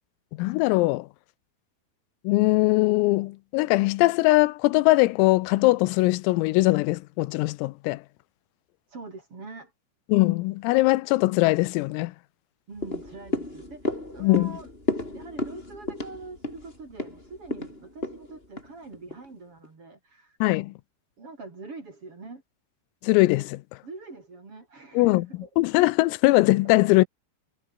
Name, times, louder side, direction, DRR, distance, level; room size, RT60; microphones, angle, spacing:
voice 1, 0.3-1.1 2.3-8.0 10.1-12.1 14.2-14.6 20.4-20.8 23.0-23.6 25.0-25.3 25.6-27.1, left 21 dB, 85° left, 3.5 m, -21 dB
voice 2, 8.9-9.7 12.7-14.7 15.1-20.4 21.2-22.4 23.8-25.5 26.6-26.7, right 3 dB, 30° right, 4.3 m, -44 dB
sound 1, 12.8-19.3 19.6-19.7, left 1 dB, 10° left, 5.1 m, -33 dB
omnidirectional pair, 5.9 m